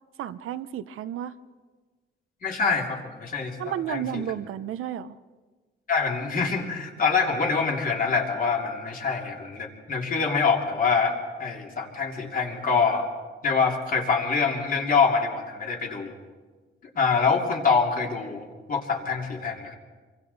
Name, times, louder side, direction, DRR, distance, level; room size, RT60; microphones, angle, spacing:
voice 1, 0.2-1.3 3.6-5.2, right 10 dB, 85° right, 13 dB, 0.8 m, -32 dB
voice 2, 2.4-4.2 5.9-13.1 13.4-16.1 16.9-19.8, left 5 dB, 40° left, 1 dB, 2.8 m, -25 dB
26.5 x 24.0 x 4.1 m, 1.4 s
cardioid pair, 155°, 21 cm